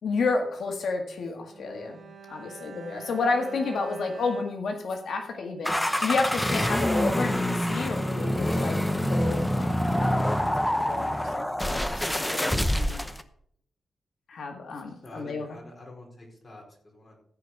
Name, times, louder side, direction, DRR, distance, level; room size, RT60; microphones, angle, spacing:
voice 1, 0.0-2.0 2.3-5.7 6.0-8.8 9.1-13.1 14.3-15.5, left 4 dB, 75° left, 3 dB, 1.9 m, -31 dB
Bowed string instrument, 1.5-5.9 6.2-6.3, right 5 dB, 50° right, 2.4 m, -47 dB
sound 1, 5.6-13.2, left 1 dB, 10° left, 0.8 m, -26 dB
voice 2, 15.0-17.2, left 1 dB, 35° left, -1 dB, 4.6 m, -47 dB
15.0 x 5.0 x 6.6 m, 0.67 s
wide cardioid pair, 105°, 0 cm